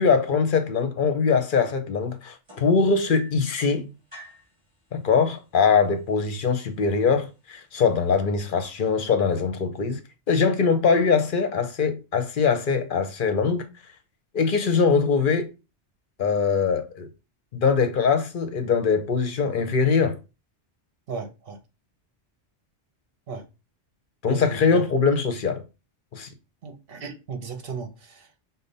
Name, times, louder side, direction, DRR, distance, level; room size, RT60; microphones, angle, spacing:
voice 1, 0.0-3.9 4.9-10.0 10.3-13.7 14.3-15.5 16.2-17.1 17.5-20.2 24.2-25.6 26.1-26.3, left 5 dB, 55° left, 0.7 m, -22 dB
sound 1, 2.5-3.5 4.1-4.5 5.5-5.6 6.0-6.4 7.1-7.2, right 2 dB, 25° right, 2.4 m, -45 dB
voice 2, 21.1-21.6 23.3-23.5 24.3-24.8 26.6-28.4, right 5 dB, 55° right, 1.1 m, -36 dB
5.2 x 2.1 x 3.9 m
omnidirectional pair, 1.2 m